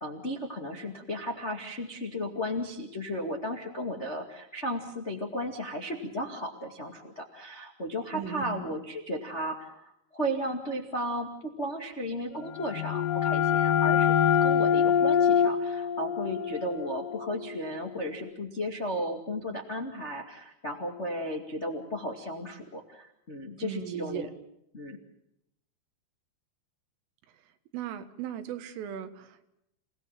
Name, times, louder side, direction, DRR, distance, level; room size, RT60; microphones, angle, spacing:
voice 1, 0.0-14.1 14.4-24.2 24.7-25.0, equal, 65° left, 2 dB, 0.6 m, -35 dB
voice 2, 8.1-8.8 23.6-24.3 27.7-29.4, right 10 dB, 85° right, 9 dB, 4.1 m, -37 dB
sound 1, 12.4-17.9, left 8 dB, 85° left, 4.5 m, -25 dB
29.5 x 18.0 x 7.4 m, 0.80 s
omnidirectional pair, 5.7 m